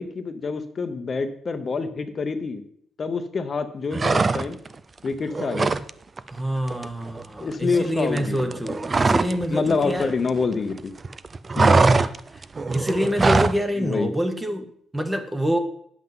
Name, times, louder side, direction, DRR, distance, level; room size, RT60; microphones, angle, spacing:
voice 1, 0.0-2.6 3.0-4.6 5.0-5.7 7.4-8.7 9.5-10.9 11.6-11.8 13.8-14.1, left 4 dB, 40° left, 8 dB, 0.8 m, -26 dB
sound 1, 3.9-4.7 5.1-5.9 6.2-6.4 6.7-9.4 9.7-10.8 11.0-13.6, right 3 dB, 30° right, 0.4 m, -22 dB
voice 2, 6.3-10.1 11.7-12.4 12.7-15.6, equal, 10° right, 7 dB, 1.0 m, -26 dB
9.2 x 7.7 x 3.7 m, 0.65 s
cardioid pair, 90°, 0 cm